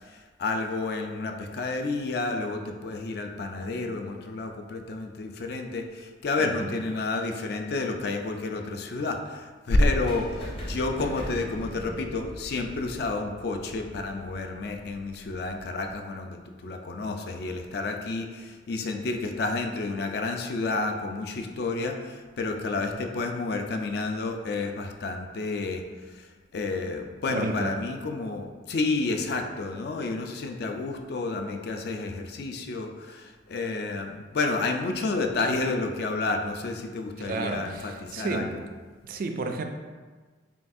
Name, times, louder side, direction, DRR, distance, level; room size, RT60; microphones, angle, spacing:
voice 1, 0.1-38.5, left 3 dB, 55° left, 4 dB, 0.4 m, -30 dB
voice 2, 6.4-6.8 27.3-27.8 37.2-38.5 39.0-39.6, right 3 dB, 45° right, 5 dB, 0.3 m, -32 dB
sound 1, 10.0-15.9, equal, 30° left, 0.7 m, -40 dB
6.9 x 2.3 x 2.6 m, 1.4 s
head